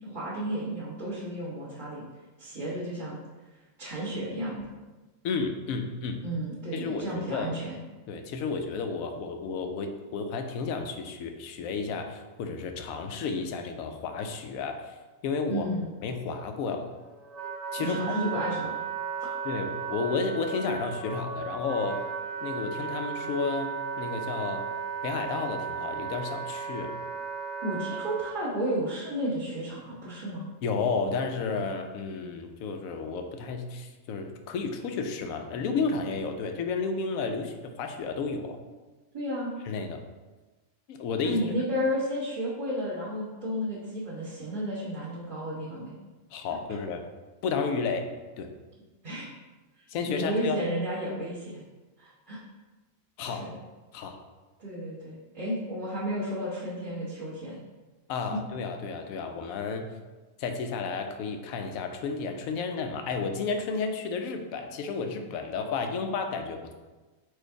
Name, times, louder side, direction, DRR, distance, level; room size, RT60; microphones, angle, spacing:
voice 1, 0.0-2.0 2.4-3.2 3.8-4.7 6.2-7.8 15.5-15.9 17.8-18.7 19.2-19.4 27.6-30.5 39.1-39.5 41.2-45.9 49.0-49.3 50.1-51.6 52.0-52.4 53.2-53.5 54.6-57.6, equal, 25° right, -13 dB, 1.2 m, -32 dB
voice 2, 5.2-6.2 6.7-7.5 8.1-14.8 15.2-15.7 16.0-16.9 17.7-18.4 19.4-22.0 22.4-24.6 25.0-26.9 30.6-38.6 39.7-40.0 40.9-41.4 46.3-47.0 47.4-48.1 48.4-48.5 49.9-50.6 53.2-53.5 53.9-54.2 58.1-59.9 60.4-66.7, left 4 dB, 90° left, 5 dB, 1.0 m, -32 dB
Wind instrument woodwind instrument, 16.7-28.3, right 6 dB, 75° right, 1.8 m, -35 dB
4.6 x 2.5 x 4.5 m, 1.2 s
omnidirectional pair, 1.4 m